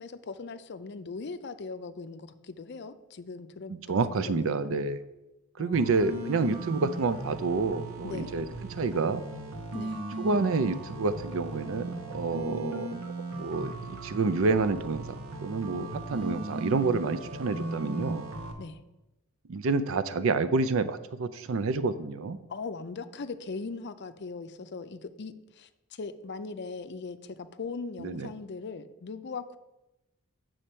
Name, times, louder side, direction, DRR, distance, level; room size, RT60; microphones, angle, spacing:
voice 1, 0.0-4.7 5.6-6.4 8.0-8.4 9.7-10.0 15.8-16.0 18.6-18.8 22.5-29.6, left 4 dB, 50° left, 10 dB, 0.5 m, -40 dB
voice 2, 3.7-5.0 5.6-9.2 10.2-12.9 13.4-15.0 15.4-18.3 19.5-22.4 28.0-28.3, right 4 dB, 65° right, 13 dB, 0.4 m, -28 dB
sound 1, 5.7-18.5, right 2 dB, 80° right, 1.1 m, -38 dB
8.3 x 6.3 x 4.4 m, 0.96 s
head